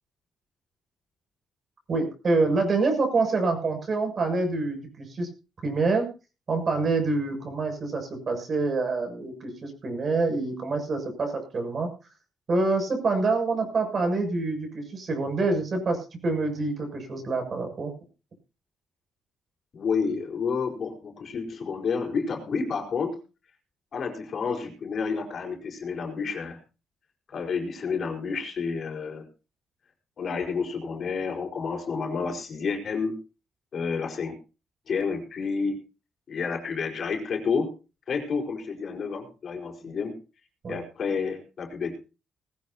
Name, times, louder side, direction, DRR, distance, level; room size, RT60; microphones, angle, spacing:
voice 1, 1.9-5.3 5.6-6.1 6.5-11.9 12.5-17.9 40.6-40.8, right 3 dB, 45° right, 4 dB, 7.2 m, -26 dB
voice 2, 19.7-23.2 23.9-26.6 27.3-29.3 30.2-33.1 33.7-34.3 34.9-35.8 36.3-37.7 38.1-40.2 40.7-42.0, left 5 dB, 55° left, 1 dB, 4.8 m, -30 dB
20.0 x 14.5 x 2.9 m, 0.32 s
cardioid pair, 90°, 0 cm